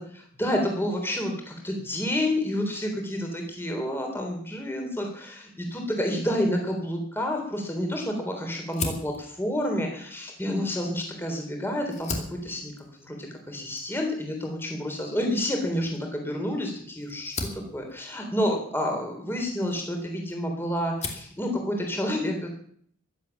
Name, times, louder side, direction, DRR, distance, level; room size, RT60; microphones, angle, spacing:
voice 1, 0.4-12.1 12.4-12.7 13.0-13.2 13.5-22.5, left 1 dB, 10° left, 2 dB, 3.6 m, -29 dB
Fire, 8.7-11.3 11.8-20.4 20.7-21.4, left 3 dB, 30° left, 2.5 m, -39 dB
14.5 x 12.0 x 7.1 m, 0.62 s
head